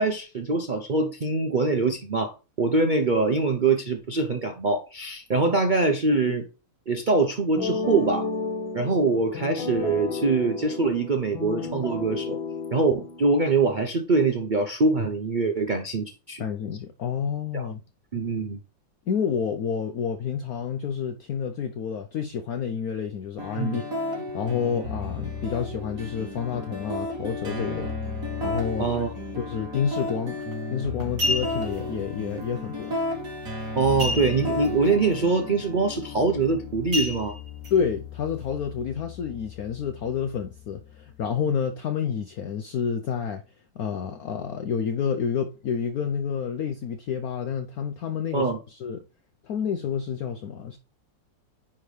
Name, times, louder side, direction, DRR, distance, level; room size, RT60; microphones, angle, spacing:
voice 1, 0.0-2.3 2.6-6.4 6.9-8.3 8.7-12.4 12.7-16.4 17.5-17.7 18.1-18.6 23.6-23.8 28.8-29.1 33.8-37.4 48.3-48.6, right 3 dB, 85° right, 0.4 m, -24 dB
sound 1, 7.5-13.6, left 4 dB, 85° left, 2.1 m, -32 dB
voice 2, 16.4-17.8 19.1-23.8 24.3-27.9 28.4-29.0 29.4-30.4 30.7-33.0 37.7-43.4 43.8-49.0 49.4-50.8, left 7 dB, 65° left, 0.9 m, -29 dB
sound 2, 23.4-41.3, left 2 dB, 45° right, 2.2 m, -34 dB
sound 3, 30.3-30.5 31.0-31.8 34.0-34.7 35.0-35.1 35.6-35.8 36.9-37.7 38.3-38.4, equal, 65° right, 3.4 m, -29 dB
9.8 x 3.6 x 3.2 m
omnidirectional pair, 2.1 m